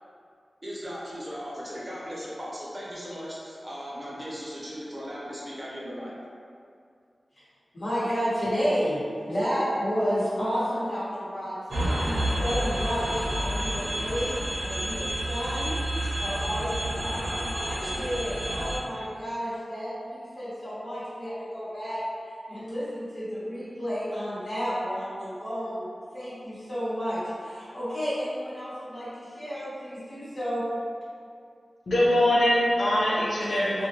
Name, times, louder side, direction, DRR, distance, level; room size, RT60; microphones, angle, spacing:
voice 1, 0.6-6.1, equal, 20° right, -7 dB, 0.6 m, -37 dB
voice 2, 7.7-9.0 9.3-22.0 22.5-25.9 26.1-30.7, equal, 60° left, -13 dB, 1.1 m, -31 dB
sound 1, 11.7-18.8, right 1 dB, 85° right, 0.7 m, -29 dB
voice 3, 31.9-33.9, left 1 dB, 80° left, -7 dB, 0.5 m, -22 dB
2.4 x 2.1 x 2.9 m, 2.3 s
wide cardioid pair, 95°, 0 cm